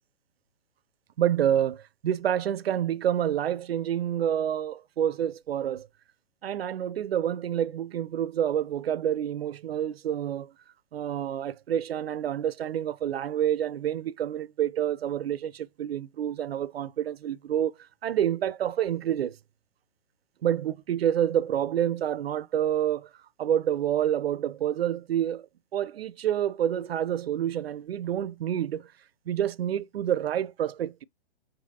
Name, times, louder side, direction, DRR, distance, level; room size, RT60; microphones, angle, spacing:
voice 1, 1.2-5.9 6.4-10.5 10.9-17.7 18.0-19.4 20.4-23.1 23.4-28.9 29.3-31.0, right 10 dB, 70° right, 0.5 m, -28 dB
6.7 x 2.9 x 2.6 m
figure-of-eight pair, 125°, 32 cm